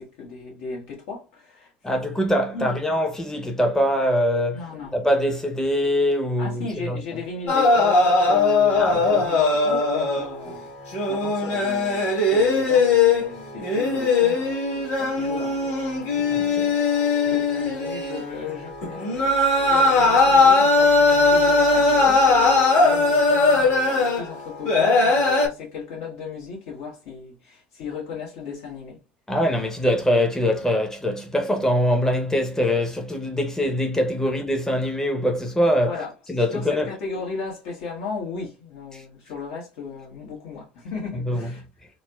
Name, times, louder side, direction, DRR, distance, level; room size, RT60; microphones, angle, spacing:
voice 1, 0.0-1.7 2.5-2.8 4.5-5.0 6.4-15.7 17.2-19.3 19.6-29.0 35.8-36.1 36.5-41.6, left 5 dB, 70° left, 1.5 m, -35 dB
voice 2, 1.8-4.6 4.9-7.0 8.8-9.2 16.3-16.7 29.3-36.0 36.3-36.9 38.9-39.0 41.2-41.5, equal, 10° left, 0.7 m, -23 dB
sound 1, 7.5-10.6 10.9-25.5, left 3 dB, 50° left, 1.5 m, -19 dB
3.9 x 2.1 x 2.3 m
hypercardioid pair, 70°, 5 cm